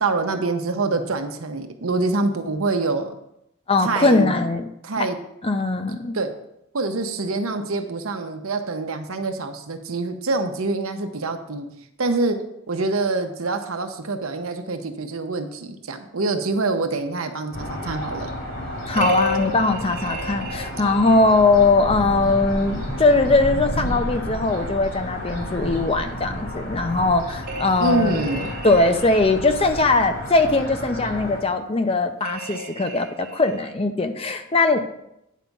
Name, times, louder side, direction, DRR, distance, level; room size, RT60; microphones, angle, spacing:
voice 1, 0.0-3.2 3.8-4.4 4.8-5.2 6.1-6.3 6.7-11.7 12.0-12.4 12.7-18.3 27.8-28.5, right 3 dB, 80° right, 6 dB, 0.9 m, -25 dB
voice 2, 3.7-4.7 5.0-5.1 5.4-6.2 18.9-34.8, left 3 dB, 25° left, 8 dB, 0.5 m, -20 dB
sound 1, 17.5-31.4, equal, 65° left, 2.6 m, -31 dB
sound 2, 18.9-21.4 27.4-29.6 32.2-33.7, equal, 45° right, 1.0 m, -32 dB
9.3 x 4.7 x 5.3 m, 0.82 s
head